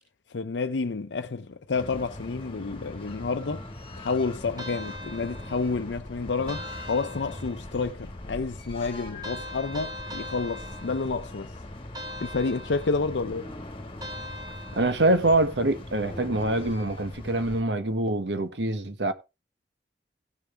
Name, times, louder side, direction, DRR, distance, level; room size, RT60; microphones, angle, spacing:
voice 1, 0.3-3.7 4.0-11.5 12.2-13.5, left 4 dB, 85° left, 0.6 m, -30 dB
sound 1, 1.7-17.6, left 1 dB, 30° left, 1.8 m, -41 dB
sound 2, 4.6-5.9 6.5-7.8 9.2-11.4 11.9-13.2 14.0-15.3, equal, 25° right, 1.5 m, -41 dB
voice 2, 14.8-19.1, right 2 dB, 80° right, 1.4 m, -25 dB
16.5 x 6.8 x 3.5 m
head